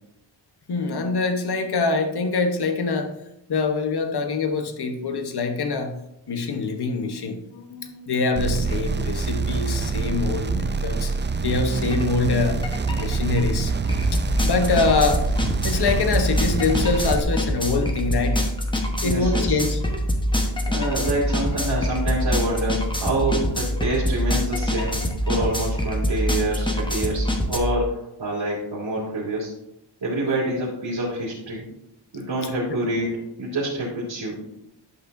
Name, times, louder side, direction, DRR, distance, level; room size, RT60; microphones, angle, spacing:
voice 1, 0.7-3.1 3.5-6.0 6.3-11.1 11.4-13.7 14.1-15.3 15.6-18.4 19.0-19.8, left 4 dB, 55° left, 6 dB, 1.1 m, -24 dB
sound 1, 8.4-17.2, right 4 dB, 25° right, 0.4 m, -26 dB
sound 2, 11.9-12.1 12.4-27.6, equal, 10° left, 1.1 m, -25 dB
voice 2, 19.0-19.7 20.5-29.5 30.0-31.7 32.1-34.6, right 1 dB, 65° right, -7 dB, 2.6 m, -27 dB
11.0 x 5.7 x 2.6 m, 0.82 s
wide cardioid pair, 85°, 47 cm